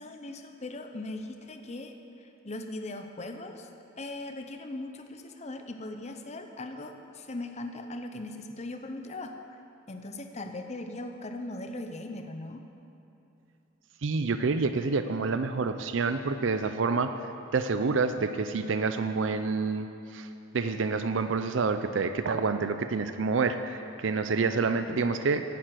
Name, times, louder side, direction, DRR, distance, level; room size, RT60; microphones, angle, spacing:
voice 1, 0.0-3.7 3.9-9.4 9.9-12.6 24.7-25.0, left 2 dB, 35° left, 6 dB, 0.7 m, -39 dB
voice 2, 14.0-17.1 17.5-19.9 20.1-20.3 20.5-25.4, right 4 dB, 70° right, 9 dB, 0.5 m, -28 dB
11.0 x 9.3 x 7.7 m, 2.8 s
head